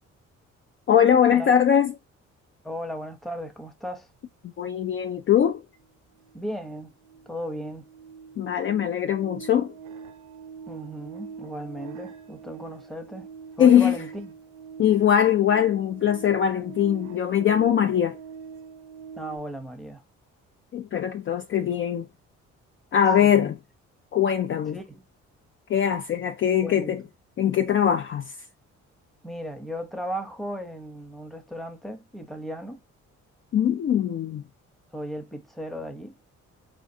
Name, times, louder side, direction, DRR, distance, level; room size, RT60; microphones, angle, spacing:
voice 1, 0.9-1.9 4.4-5.6 8.4-9.7 13.6-13.9 14.8-18.2 20.7-22.1 22.9-23.6 24.1-24.8 25.7-27.0 27.4-28.3 33.5-34.4, left 9 dB, 40° left, 0.4 m, -21 dB
voice 2, 2.6-4.1 6.3-6.9 7.3-7.9 10.7-14.3 19.2-20.0 23.2-23.5 24.7-25.0 26.5-27.0 29.2-32.8 34.9-36.2, equal, ahead, 0.8 m, -36 dB
sound 1, 5.8-5.9 6.2-19.4, right 6 dB, 80° right, 0.7 m, -43 dB
5.1 x 2.4 x 2.7 m
cardioid pair, 90°, 30 cm